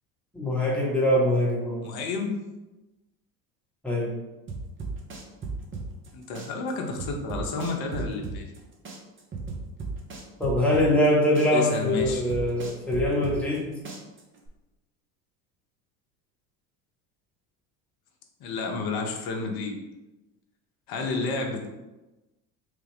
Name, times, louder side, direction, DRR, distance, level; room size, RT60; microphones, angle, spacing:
voice 1, 0.3-1.9 3.8-4.1 10.4-13.8, left 1 dB, 5° left, -5 dB, 1.1 m, -23 dB
voice 2, 1.8-2.3 6.1-8.5 11.5-12.2 18.4-19.8 20.9-21.7, left 4 dB, 45° left, 2 dB, 0.9 m, -30 dB
sound 1, 4.5-6.1 6.3-8.6 8.8-11.1 11.3-13.6 13.8-14.5, right 4 dB, 25° right, 0.7 m, -35 dB
3.3 x 2.3 x 3.4 m, 1.1 s
hypercardioid pair, 75°, 50 cm